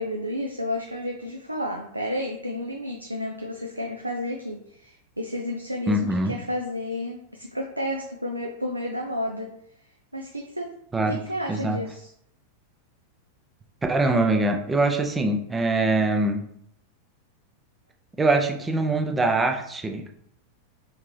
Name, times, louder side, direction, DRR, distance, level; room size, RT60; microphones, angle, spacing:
voice 1, 0.0-9.5 10.1-10.7 11.1-12.1, left 1 dB, 85° right, 2 dB, 0.4 m, -31 dB
voice 2, 5.9-6.4 10.9-11.2 11.5-11.8 13.9-16.4 18.2-20.0, right 2 dB, 15° right, 4 dB, 0.5 m, -23 dB
3.3 x 2.8 x 3.2 m, 0.72 s
figure-of-eight pair, 90°, 0 cm